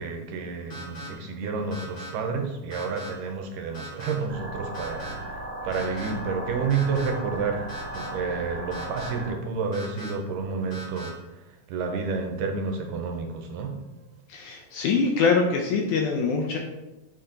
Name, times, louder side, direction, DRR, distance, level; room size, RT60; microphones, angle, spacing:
voice 1, 0.0-13.8, right 5 dB, 80° right, 3 dB, 2.3 m, -30 dB
sound 1, 0.7-1.1 1.7-2.1 2.7-3.1 3.7-4.1 4.7-5.1 5.7-6.1 6.7-7.1 7.7-8.1 8.7-9.1 9.7-10.1 10.7-11.1, equal, 30° left, 1.6 m, -40 dB
sound 2, 4.3-9.3, right 1 dB, 50° right, 2.4 m, -36 dB
voice 2, 14.3-16.6, left 4 dB, 80° left, 2 dB, 1.8 m, -24 dB
6.7 x 4.2 x 3.8 m, 1.0 s
omnidirectional pair, 3.9 m